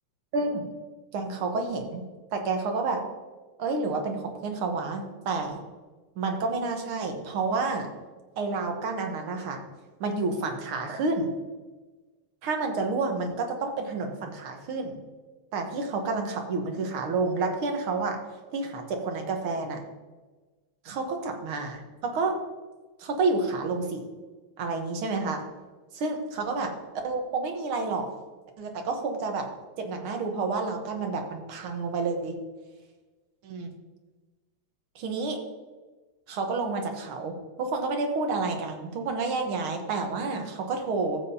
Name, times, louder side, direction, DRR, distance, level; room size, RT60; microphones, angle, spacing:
voice 1, 0.3-0.7 1.1-2.0 2.3-3.0 3.6-5.6 6.2-7.9 8.4-9.6 10.0-11.3 12.4-15.0 15.5-18.2 18.5-19.8 20.8-22.4 23.0-24.0 24.6-25.4 25.9-26.7 27.0-28.1 28.6-29.5 29.8-32.4 33.4-33.7 35.0-35.4 36.3-41.2, right 3 dB, 85° right, 4 dB, 2.0 m, -29 dB
13.5 x 7.5 x 2.8 m, 1.3 s
omnidirectional pair, 2.3 m